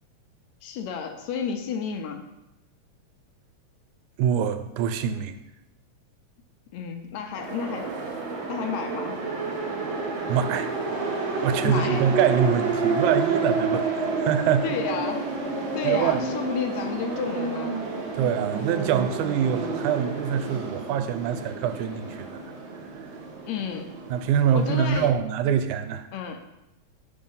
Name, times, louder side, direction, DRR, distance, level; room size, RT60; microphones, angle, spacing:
voice 1, 0.6-2.2 6.7-7.9 8.5-9.2 11.6-12.0 14.6-15.3 15.7-17.8 23.5-24.0 24.5-25.1 26.1-26.4, left 7 dB, 80° left, 6 dB, 1.8 m, -31 dB
voice 2, 4.2-5.4 10.3-10.7 11.4-13.9 14.2-14.7 15.8-16.3 18.1-22.3 24.1-26.1, right 8 dB, 90° right, 9 dB, 2.0 m, -24 dB
sound 1, 7.3-25.1, right 4 dB, 60° right, 1.4 m, -30 dB
5.2 x 4.8 x 5.4 m, 0.93 s
omnidirectional pair, 3.3 m